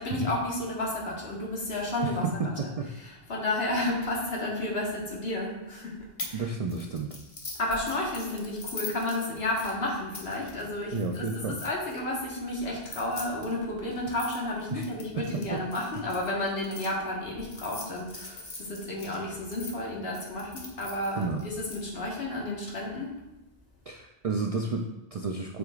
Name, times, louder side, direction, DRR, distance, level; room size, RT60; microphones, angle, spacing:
voice 1, 0.0-2.2 2.6-2.7 3.0-6.0 6.3-6.5 7.6-23.2, left 1 dB, 60° left, -2 dB, 1.6 m, -32 dB
voice 2, 2.0-2.5 2.8-2.9 6.3-7.2 10.9-11.6 14.7-14.8 15.2-15.6 21.1-21.4 23.9-25.6, right 4 dB, 70° right, 2 dB, 0.3 m, -31 dB
sound 1, 6.2-6.4 6.7-12.0 12.7-16.9 17.4-19.7 20.1-21.8, left 2 dB, 30° left, 1.0 m, -42 dB
7.7 x 5.1 x 2.4 m, 0.96 s
omnidirectional pair, 1.2 m